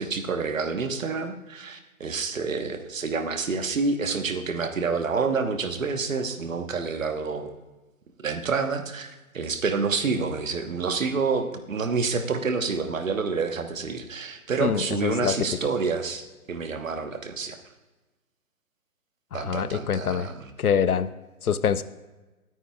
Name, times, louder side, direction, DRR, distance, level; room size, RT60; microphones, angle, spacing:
voice 1, 0.0-7.5 8.2-16.2 16.5-17.6 19.3-20.5, right 4 dB, 60° right, 7 dB, 1.3 m, -28 dB
voice 2, 14.6-15.4 19.3-20.3 20.6-21.1 21.4-21.8, left 7 dB, 75° left, 15 dB, 0.7 m, -25 dB
20.0 x 9.3 x 2.4 m, 1.1 s
figure-of-eight pair, 150°, 45 cm